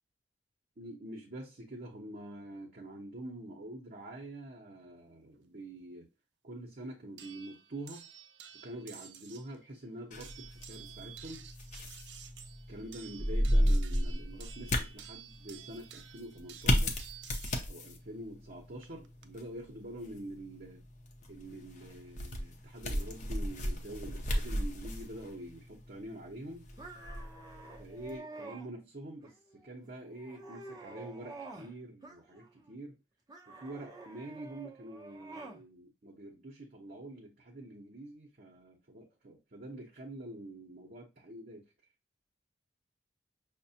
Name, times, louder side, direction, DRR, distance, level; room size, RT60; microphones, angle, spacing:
voice 1, 0.8-6.1 6.4-8.1 8.6-11.5 12.7-16.9 17.7-20.8 21.3-26.6 27.8-33.0 33.5-41.7, right 1 dB, 55° right, 0.8 m, -46 dB
sound 1, 7.2-9.5 10.2-17.7 18.8-19.2, right 9 dB, 70° right, 0.4 m, -52 dB
sound 2, 10.1-28.2, equal, 45° left, 0.7 m, -35 dB
sound 3, 26.8-28.7 29.2-29.7 30.1-31.7 32.0-32.7 33.3-35.6, right 3 dB, 20° right, 0.6 m, -49 dB
5.8 x 2.1 x 2.7 m
head